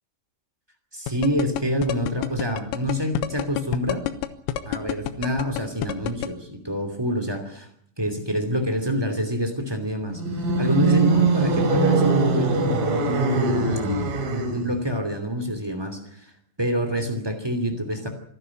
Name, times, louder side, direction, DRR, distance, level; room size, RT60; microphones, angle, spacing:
voice 1, 0.9-4.0 4.6-7.7 8.0-13.6 14.3-16.3 16.6-18.1, equal, 25° right, 6 dB, 0.5 m, -27 dB
sound 1, 1.1-6.3, left 13 dB, 85° left, 3.6 m, -27 dB
sound 2, 10.1-14.8, right 3 dB, 50° right, 3.9 m, -22 dB
26.5 x 12.0 x 10.0 m, 0.68 s
omnidirectional pair, 5.8 m